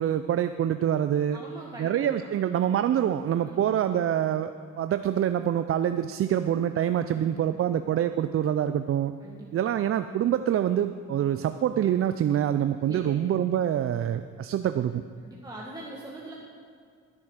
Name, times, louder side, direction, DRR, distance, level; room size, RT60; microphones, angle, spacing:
voice 1, 0.0-1.4 1.8-9.1 9.5-15.0, right 10 dB, 50° right, 10 dB, 0.5 m, -26 dB
voice 2, 1.3-2.3 3.4-3.7 7.1-7.8 9.2-9.8 12.9-13.2 15.2-16.3, right 1 dB, 15° right, -4 dB, 1.7 m, -43 dB
13.5 x 7.1 x 6.5 m, 2.2 s
cardioid pair, 90°, 30 cm